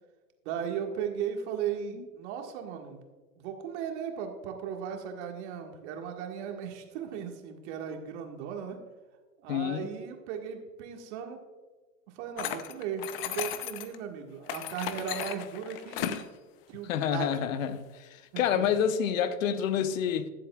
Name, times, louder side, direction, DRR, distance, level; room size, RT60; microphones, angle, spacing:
voice 1, 0.5-3.0 3.4-8.8 9.4-11.4 12.1-16.2 16.7-17.5 18.3-18.7, right 8 dB, 45° right, 1.8 m, -37 dB
voice 2, 9.5-9.9 16.9-17.8 18.4-20.3, left 8 dB, 55° left, 0.9 m, -28 dB
sound 1, 12.4-14.0 14.5-16.3, left 11 dB, 35° left, 0.7 m, -35 dB
20.0 x 7.6 x 2.4 m
hypercardioid pair, 115°, 47 cm